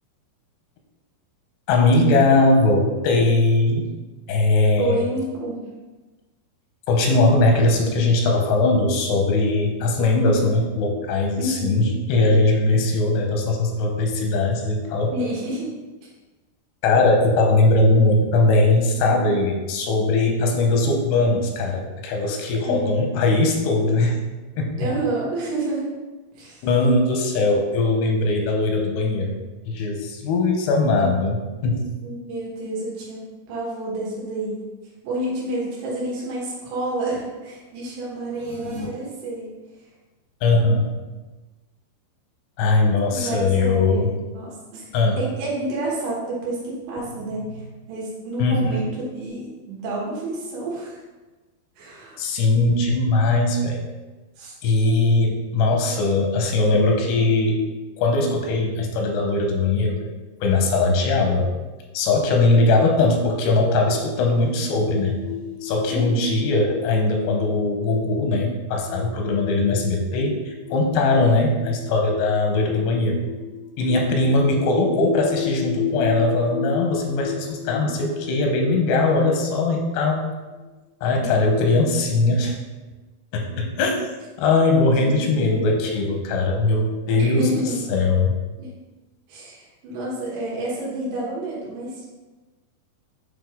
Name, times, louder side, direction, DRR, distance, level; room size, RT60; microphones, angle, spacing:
voice 1, 1.7-3.9 4.3-5.0 6.9-15.1 16.8-24.2 24.6-24.8 26.6-29.4 29.7-31.9 40.4-40.9 42.6-44.1 44.9-45.2 48.4-48.8 52.2-53.8 54.6-57.6 58.0-60.0 60.4-61.5 61.9-65.2 65.6-70.4 70.7-73.2 73.8-80.3 81.0-82.6 83.3-83.9 84.4-88.4, left 2 dB, 90° left, 2 dB, 2.8 m, -20 dB
voice 2, 4.8-5.6 11.4-11.8 15.1-15.7 22.6-23.1 24.8-25.9 26.3-26.7 32.0-33.2 33.5-34.6 35.0-39.5 43.1-44.8 45.2-47.5 47.9-51.0 51.8-52.2 54.4-54.5 65.9-66.3 71.2-71.5 81.0-81.4 84.8-85.3 87.1-87.8 88.6-88.7 89.3-92.1, right 1 dB, 80° right, -5 dB, 3.4 m, -29 dB
sound 1, 38.2-38.8, left 3 dB, 55° right, 1.7 m, -37 dB
sound 2, 64.4-80.7, left 10 dB, 75° left, 1.7 m, -34 dB
8.3 x 3.1 x 3.6 m, 1.2 s
omnidirectional pair, 4.9 m